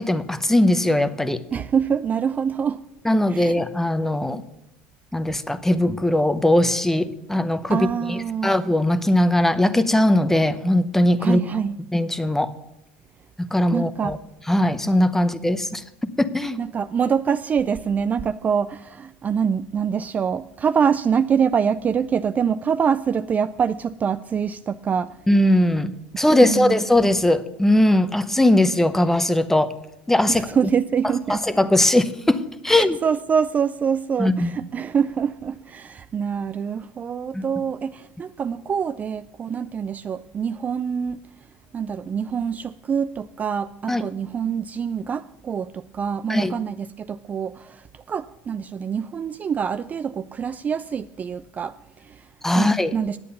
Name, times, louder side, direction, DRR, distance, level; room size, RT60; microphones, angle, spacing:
voice 1, 0.0-1.4 3.0-4.4 5.1-11.4 11.9-12.5 13.4-14.2 14.5-16.6 25.3-29.7 30.1-30.5 31.3-33.0 34.2-34.6 37.3-37.5 43.9-44.0 46.3-46.6 52.4-52.9, left 1 dB, 5° left, 0.8 m, -20 dB
voice 2, 1.5-2.8 3.3-3.5 7.7-8.5 11.2-11.8 13.7-14.2 16.6-25.2 26.4-26.8 30.3-31.4 32.7-41.2 41.7-52.3 52.6-53.2, right 7 dB, 30° right, 0.3 m, -25 dB
9.7 x 8.3 x 6.9 m
supercardioid pair, 100°, 6 cm